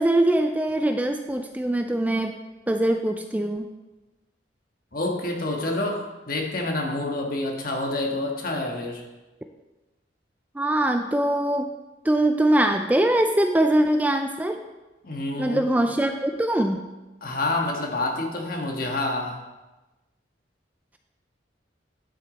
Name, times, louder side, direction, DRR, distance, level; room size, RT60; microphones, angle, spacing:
voice 1, 0.0-2.4 2.7-3.7 10.6-11.7 12.0-14.6 15.4-16.9, right 1 dB, 10° right, 5 dB, 0.3 m, -22 dB
voice 2, 4.9-9.0 15.0-15.9 17.2-19.4, left 2 dB, 50° left, 1 dB, 1.4 m, -28 dB
11.0 x 6.3 x 4.1 m, 1.1 s
head